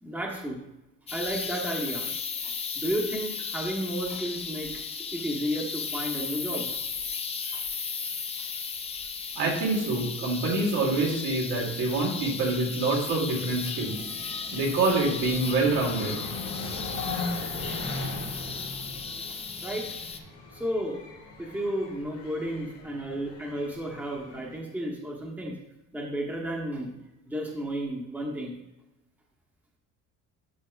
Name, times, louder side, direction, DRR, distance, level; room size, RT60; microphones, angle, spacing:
voice 1, 0.0-0.6 1.1-2.1 2.4-4.7 5.1-6.8 7.5-7.6 19.3-19.9 20.5-21.0 21.4-25.5 25.9-26.9 27.3-28.6, equal, 5° right, -1 dB, 0.9 m, -32 dB
sound 1, 1.1-20.2, left 5 dB, 20° left, 0.4 m, -35 dB
voice 2, 9.4-14.1 14.5-16.2, right 3 dB, 80° right, -3 dB, 2.3 m, -26 dB
sound 2, 13.5-24.6, left 2 dB, 75° left, 2.3 m, -39 dB
11.0 x 4.3 x 2.3 m, 0.94 s
cardioid pair, 140°, 32 cm